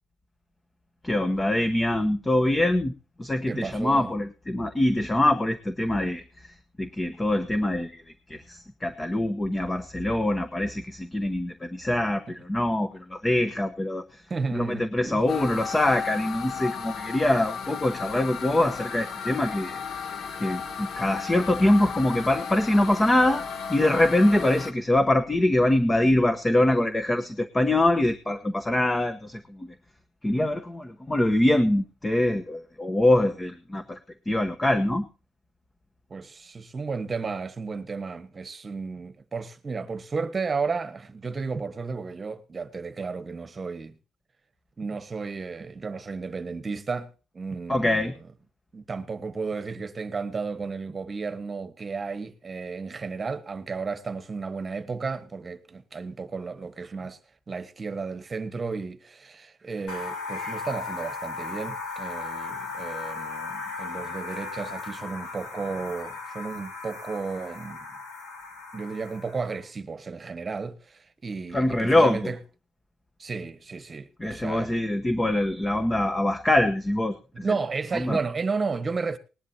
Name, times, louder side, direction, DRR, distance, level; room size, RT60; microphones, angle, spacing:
voice 1, 1.0-2.9 3.2-8.0 8.3-14.2 14.5-19.8 20.4-23.4 23.7-29.7 30.2-34.0 34.3-35.0 47.7-48.1 71.5-72.3 74.2-77.4 77.9-78.2, left 1 dB, 15° left, 1.0 m, -24 dB
voice 2, 3.5-4.1 12.3-12.4 14.3-15.3 36.1-44.0 44.8-48.1 48.7-57.2 57.5-68.0 68.7-72.4 73.2-74.7 77.3-79.2, right 4 dB, 25° right, 1.3 m, -33 dB
sound 1, 15.3-24.7, left 6 dB, 55° left, 1.2 m, -34 dB
sound 2, 59.9-69.6, left 4 dB, 90° left, 3.5 m, -36 dB
19.5 x 11.0 x 2.8 m
cardioid pair, 125°, 0 cm